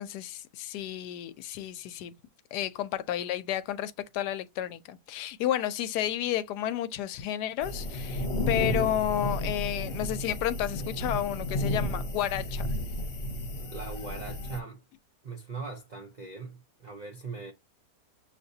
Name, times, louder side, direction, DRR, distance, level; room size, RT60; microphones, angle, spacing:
voice 1, 0.0-2.1 2.5-12.7, left 11 dB, 90° left, 1.2 m, -31 dB
sound 1, 7.6-14.6, left 1 dB, 45° left, 1.1 m, -32 dB
voice 2, 13.7-14.8 15.2-17.5, right 4 dB, 65° right, 0.4 m, -40 dB
6.6 x 2.9 x 2.6 m
omnidirectional pair, 1.7 m